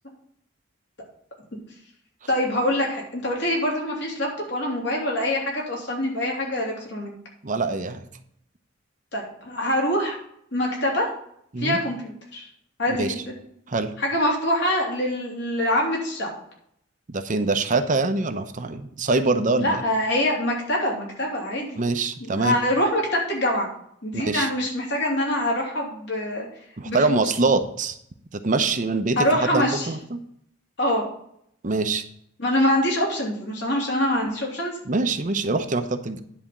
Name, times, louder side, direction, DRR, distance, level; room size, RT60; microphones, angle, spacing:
voice 1, 2.3-7.1 9.1-10.2 10.5-11.1 11.6-12.5 12.8-13.4 14.0-16.3 19.6-21.8 22.3-23.7 24.0-26.5 26.8-27.0 29.2-29.9 30.8-31.0 32.4-34.8, left 1 dB, 65° left, -1 dB, 3.2 m, -24 dB
voice 2, 7.4-8.0 11.5-11.8 13.0-13.1 13.7-13.9 17.1-19.8 21.8-22.6 24.1-24.5 26.8-28.0 28.4-30.2 31.6-32.0 34.9-36.2, right 3 dB, 45° right, 8 dB, 0.8 m, -24 dB
10.0 x 4.3 x 7.3 m, 0.69 s
head